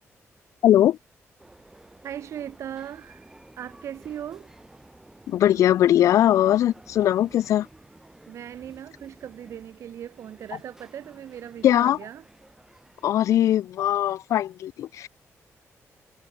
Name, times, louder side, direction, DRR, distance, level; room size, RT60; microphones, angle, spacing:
voice 1, 0.6-1.0 5.3-7.7 11.6-12.0 13.0-15.1, left 12 dB, 80° left, 0.4 m, -20 dB
sound 1, 1.4-13.1, right 2 dB, 10° right, 5.7 m, -52 dB
voice 2, 2.0-3.3 3.6-4.5 8.3-12.2, right 10 dB, 65° right, 2.1 m, -38 dB
wide cardioid pair, 180°, 5 cm